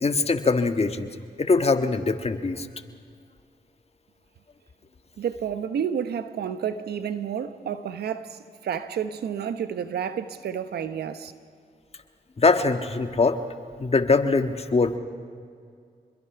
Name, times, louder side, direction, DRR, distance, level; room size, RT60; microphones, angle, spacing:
voice 1, 0.0-1.1 1.4-2.7 12.4-13.4 13.8-15.0, left 3 dB, 40° left, 1.6 m, -22 dB
voice 2, 5.2-11.3, right 8 dB, 85° right, 1.0 m, -30 dB
27.0 x 21.5 x 5.9 m
cardioid pair, 50°, 16 cm